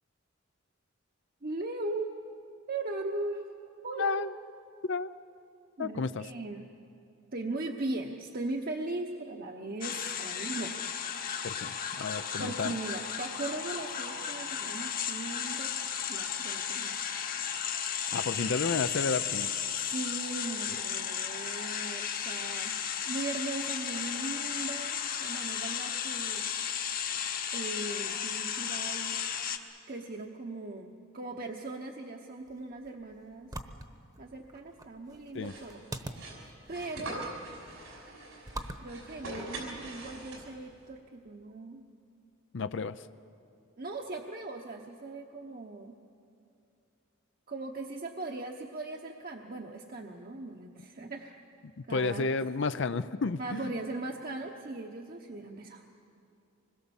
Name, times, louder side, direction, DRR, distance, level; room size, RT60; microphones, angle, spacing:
voice 1, 1.4-2.1 2.7-3.4 3.8-4.2 5.8-6.7 7.3-10.8 11.1-11.5 12.4-15.7 16.1-17.0 18.3-18.5 19.8-22.7 23.1-26.4 27.5-29.2 29.9-33.5 34.2-36.4 36.7-37.2 38.8-41.8 43.8-45.9 47.5-51.4 51.9-52.3 53.4-55.8, right 2 dB, 45° right, 2 dB, 1.0 m, -39 dB
voice 2, 3.9-4.3 4.8-5.1 5.8-6.2 11.4-12.8 18.1-19.5 35.3-35.5 42.5-43.1 51.9-53.7, left 4 dB, 60° left, 12 dB, 0.5 m, -31 dB
sound 1, 9.8-29.6, left 8 dB, 45° left, 1.2 m, -34 dB
sound 2, 32.4-40.0, right 1 dB, 20° right, 1.1 m, -46 dB
sound 3, 35.4-40.7, right 2 dB, 90° right, 5.6 m, -43 dB
25.5 x 21.5 x 7.2 m, 2.6 s
head